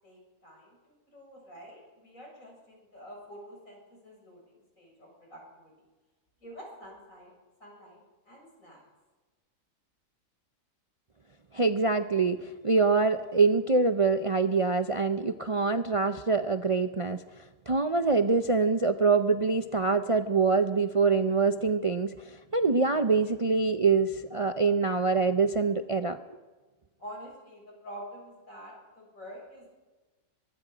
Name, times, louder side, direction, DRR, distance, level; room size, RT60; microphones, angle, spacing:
voice 1, 0.0-5.7 6.4-7.3 7.6-8.0 8.3-8.8 27.0-29.7, equal, 70° left, -1 dB, 7.4 m, -47 dB
voice 2, 11.5-17.2 17.7-26.2, right 4 dB, 35° right, 8 dB, 0.5 m, -25 dB
23.0 x 22.0 x 5.1 m, 1.2 s
omnidirectional pair, 1.4 m